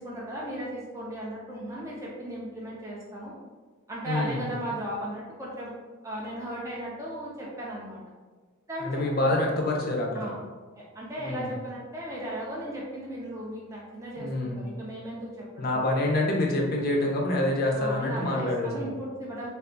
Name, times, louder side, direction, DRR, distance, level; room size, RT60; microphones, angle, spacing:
voice 1, 0.0-3.3 3.9-5.7 6.0-8.0 8.7-9.3 10.1-10.4 10.8-15.9 17.7-19.5, right 1 dB, 15° right, -5 dB, 0.5 m, -36 dB
voice 2, 4.1-4.4 8.8-10.3 11.2-11.5 14.2-14.6 15.6-18.9, left 1 dB, 45° left, 0 dB, 0.5 m, -26 dB
2.3 x 2.3 x 3.6 m, 1.4 s
head